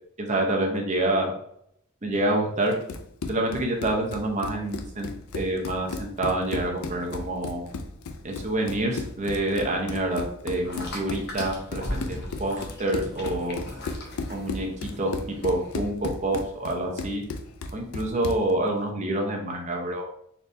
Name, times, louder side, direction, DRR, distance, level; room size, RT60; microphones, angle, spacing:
voice 1, 0.2-1.3 2.0-2.7 3.3-7.6 8.2-13.6 14.3-15.2 15.4-17.2 17.7-20.0, right 1 dB, 30° right, 1 dB, 0.8 m, -27 dB
Run, 2.7-18.5, left 3 dB, 70° left, 0.4 m, -35 dB
sound 1, 10.6-15.9, left 1 dB, 45° left, 0.9 m, -38 dB
4.0 x 3.3 x 2.6 m, 0.72 s
head